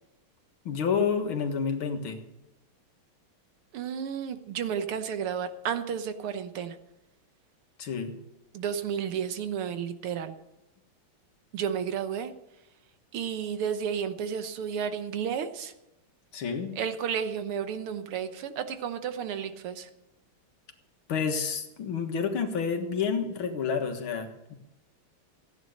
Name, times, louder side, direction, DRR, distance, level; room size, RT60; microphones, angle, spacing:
voice 1, 0.7-2.2 7.8-8.1 16.3-16.7 21.1-24.6, left 6 dB, 70° left, 5 dB, 2.4 m, -29 dB
voice 2, 3.7-6.8 8.5-10.4 11.5-12.3 13.1-15.7 16.7-19.9, right 8 dB, 85° right, 10 dB, 2.0 m, -32 dB
15.5 x 9.9 x 6.5 m, 0.94 s
omnidirectional pair, 2.4 m